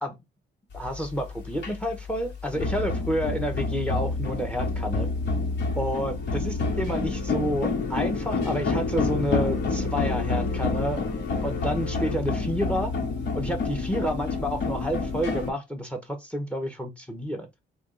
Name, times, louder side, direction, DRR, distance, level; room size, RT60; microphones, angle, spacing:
sound 1, 0.7-15.5, left 3 dB, 60° left, 1.6 m, -28 dB
voice 1, 0.7-5.1 5.8-11.0 11.4-12.9 13.3-17.5, equal, 5° left, 0.9 m, -29 dB
3.4 x 2.4 x 3.8 m
cardioid pair, 90°, 20 cm